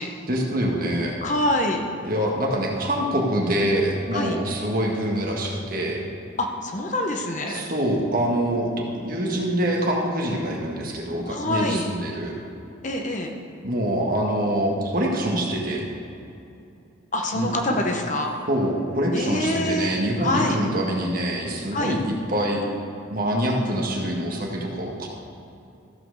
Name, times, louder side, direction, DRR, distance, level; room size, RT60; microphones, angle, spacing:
voice 1, 0.3-1.1 2.0-6.0 7.5-12.3 13.6-15.8 17.3-17.5 18.5-22.6 23.1-25.1, right 1 dB, 45° right, -1 dB, 1.7 m, -25 dB
voice 2, 1.2-1.8 4.1-4.4 6.4-7.7 11.3-11.9 12.8-13.3 17.1-18.3 19.1-20.5 21.7-22.0, left 1 dB, 35° left, 3 dB, 0.9 m, -25 dB
14.0 x 5.9 x 6.5 m, 2.7 s
head